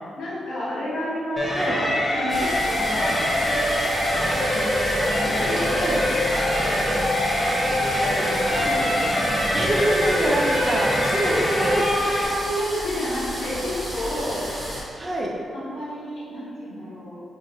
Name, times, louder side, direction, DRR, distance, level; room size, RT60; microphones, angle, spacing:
voice 1, 0.2-7.5 7.8-9.7 12.3-14.5 15.5-17.2, equal, 80° left, -9 dB, 1.0 m, -31 dB
sound 1, 1.4-12.3, left 1 dB, 15° left, 0.6 m, -23 dB
sound 2, 2.3-14.8, equal, 10° right, 1.0 m, -33 dB
voice 2, 9.5-11.8 15.0-15.3, right 1 dB, 35° right, -2 dB, 0.5 m, -25 dB
2.8 x 2.6 x 2.8 m, 2.3 s
cardioid pair, 65°, 0 cm